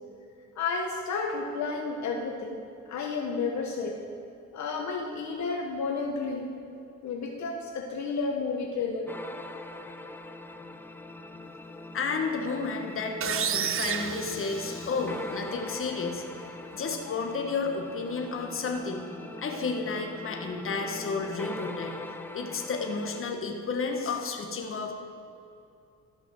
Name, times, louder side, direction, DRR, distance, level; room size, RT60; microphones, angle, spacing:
voice 1, 0.6-2.6 2.9-4.0 4.5-6.5 7.0-9.0, left 4 dB, 65° left, 1 dB, 1.1 m, -31 dB
sound 1, 9.1-23.2, left 2 dB, 5° left, 0.5 m, -42 dB
voice 2, 11.9-19.0 19.4-22.0 22.3-24.9, left 4 dB, 45° left, 3 dB, 1.3 m, -32 dB
sound 2, 13.2-15.2, right 9 dB, 45° right, 0.5 m, -31 dB
13.0 x 5.3 x 6.2 m, 2.6 s
cardioid pair, 90°, 30 cm